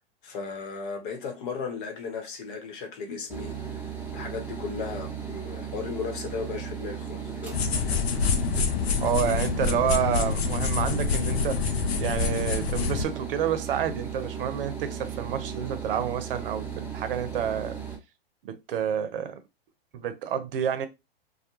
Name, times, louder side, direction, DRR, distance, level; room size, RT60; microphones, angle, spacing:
voice 1, 0.2-3.9 4.1-7.6, left 5 dB, 55° left, 1.0 m, -36 dB
sound 1, 3.3-18.0, right 7 dB, 5° right, 0.8 m, -36 dB
sound 2, 7.5-13.0, left 5 dB, 80° left, 0.5 m, -26 dB
voice 2, 9.0-11.7 12.0-17.8 18.4-19.4 19.9-20.9, right 9 dB, 65° right, 0.6 m, -29 dB
2.2 x 2.2 x 2.9 m
hypercardioid pair, 115°, 30 cm